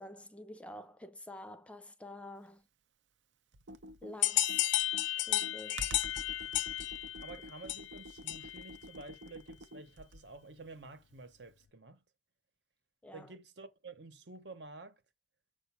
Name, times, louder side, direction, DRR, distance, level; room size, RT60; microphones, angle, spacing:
voice 1, 0.0-2.7 4.0-4.8 5.2-6.0 13.0-13.3, left 1 dB, 5° left, 0.4 m, -48 dB
Computer keyboard, 3.5-10.4, right 1 dB, 85° right, 0.7 m, -49 dB
sound 1, 4.2-8.7, left 15 dB, 75° left, 0.4 m, -33 dB
voice 2, 7.2-12.0 13.1-15.0, right 3 dB, 70° right, 1.0 m, -50 dB
7.0 x 2.6 x 5.7 m
head